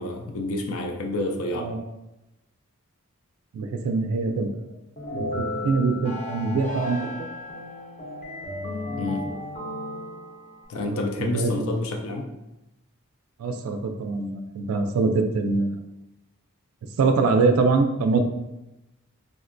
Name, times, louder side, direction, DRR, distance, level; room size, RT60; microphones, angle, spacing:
voice 1, 0.0-1.7 9.0-9.2 10.7-12.3, left 2 dB, 70° left, 3 dB, 0.4 m, -29 dB
voice 2, 3.5-4.5 5.1-7.3 10.8-11.7 13.4-15.8 17.0-18.2, right 3 dB, 80° right, 5 dB, 0.3 m, -24 dB
sound 1, 5.0-10.7, left 1 dB, 30° left, 0.6 m, -34 dB
3.6 x 2.1 x 2.5 m, 0.94 s
head